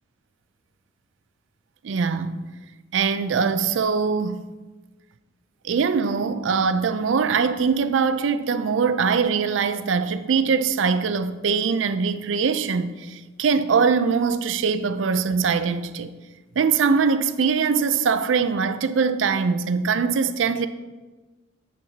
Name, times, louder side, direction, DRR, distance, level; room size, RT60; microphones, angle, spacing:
voice 1, 1.8-2.4 2.9-4.5 5.6-16.1 16.6-20.7, right 5 dB, 70° right, 0.4 m, -22 dB
9.1 x 8.0 x 2.8 m
head